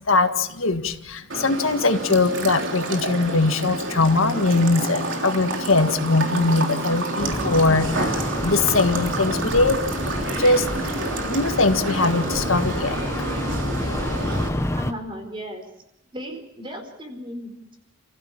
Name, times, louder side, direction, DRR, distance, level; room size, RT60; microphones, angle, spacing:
voice 1, 0.1-10.9 11.3-13.0, left 3 dB, 85° left, 7 dB, 1.8 m, -21 dB
sound 1, 1.3-14.5, right 2 dB, 65° right, 3.5 m, -29 dB
sound 2, 7.2-14.9, left 1 dB, 15° left, 1.1 m, -29 dB
voice 2, 14.7-15.7 16.1-17.8, equal, 25° right, 4 dB, 4.4 m, -36 dB
30.0 x 15.5 x 7.3 m, 0.82 s
head